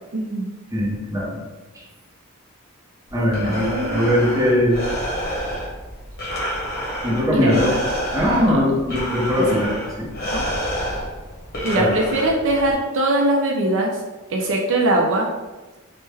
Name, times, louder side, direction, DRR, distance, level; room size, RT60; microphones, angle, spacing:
voice 1, 0.1-0.5 3.4-4.2 7.3-7.6 8.4-8.6 9.5-9.6 10.2-10.4 11.6-14.0 14.3-15.3, right 1 dB, 60° right, 0 dB, 0.4 m, -21 dB
voice 2, 0.7-1.4 3.1-4.8 7.0-7.7 8.1-10.1 11.7-11.9, equal, 15° right, -5 dB, 0.7 m, -20 dB
Breathing, 3.1-12.7, equal, 45° left, 0.9 m, -29 dB
3.2 x 2.1 x 3.3 m, 1.1 s
head